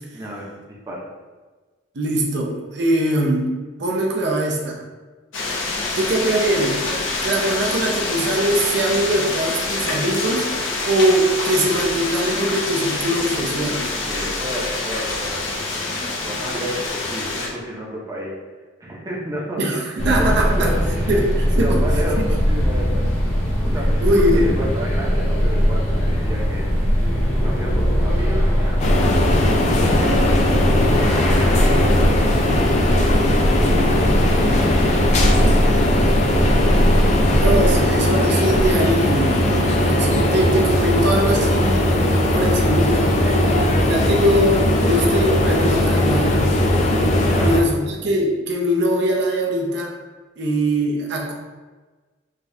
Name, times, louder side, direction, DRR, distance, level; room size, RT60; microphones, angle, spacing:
voice 1, 0.1-1.1 14.1-18.3 18.8-21.2 21.5-23.0 23.6-24.0 24.3-26.7 27.3-29.5 30.0-36.2 43.2-43.7 47.2-47.5, equal, 15° right, -4 dB, 0.6 m, -32 dB
voice 2, 2.0-3.5 3.8-4.8 5.9-6.8 7.2-10.5 10.8-13.9 19.6-20.7 21.1-21.8 22.2-22.3 24.0-24.5 37.3-41.9 42.3-43.1 43.9-46.4 47.4-49.9 50.4-51.3, right 1 dB, 60° right, -1 dB, 0.6 m, -21 dB
sound 1, 5.3-17.5, left 3 dB, 75° left, 0.7 m, -26 dB
sound 2, 20.0-37.7, equal, 55° left, 1.2 m, -20 dB
sound 3, 28.8-47.6, left 1 dB, 35° left, 0.4 m, -19 dB
4.9 x 2.3 x 2.7 m, 1.3 s
head